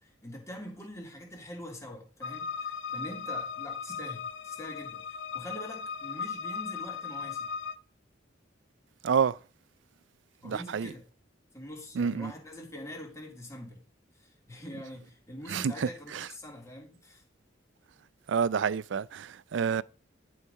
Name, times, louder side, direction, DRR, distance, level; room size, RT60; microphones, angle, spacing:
voice 1, 0.0-7.6 10.4-11.0 11.5-13.8 14.1-17.2, left 1 dB, 15° left, 2.8 m, -44 dB
sound 1, 2.2-7.8, left 6 dB, 65° left, 0.6 m, -37 dB
voice 2, 9.0-9.4 10.4-10.9 11.9-12.3 15.5-16.3 18.3-19.8, right 6 dB, 65° right, 0.4 m, -29 dB
11.5 x 4.8 x 5.4 m
head